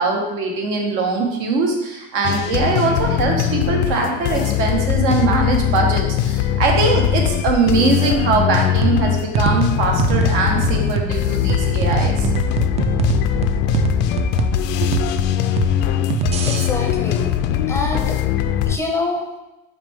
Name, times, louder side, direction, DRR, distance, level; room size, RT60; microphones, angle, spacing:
voice 1, 0.0-12.3, right 4 dB, 70° right, 1 dB, 1.3 m, -21 dB
sound 1, 2.2-18.8, left 10 dB, 60° left, 0.4 m, -21 dB
sound 2, 8.8-16.7, right 6 dB, 30° right, 0.4 m, -23 dB
voice 2, 16.4-17.4 17.7-18.2 18.7-19.3, left 2 dB, 10° left, 2 dB, 0.6 m, -25 dB
5.9 x 4.4 x 3.6 m, 0.97 s
cardioid pair, 150°, 21 cm